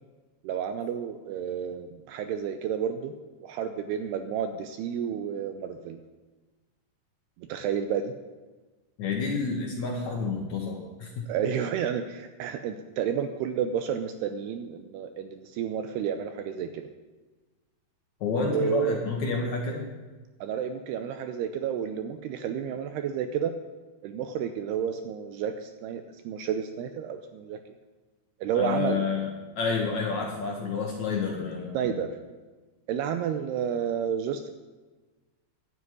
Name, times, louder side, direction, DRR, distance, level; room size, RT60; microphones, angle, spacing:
voice 1, 0.4-3.1 3.4-6.0 7.4-8.1 11.3-16.9 18.5-19.0 20.4-23.5 24.0-27.6 28.4-29.1 31.7-32.1 32.9-34.5, right 8 dB, 80° right, 7 dB, 2.6 m, -31 dB
voice 2, 9.0-11.3 18.2-19.9 28.6-29.3 29.6-32.0, left 4 dB, 65° left, 0 dB, 2.0 m, -29 dB
11.5 x 8.0 x 9.6 m, 1.3 s
omnidirectional pair, 4.9 m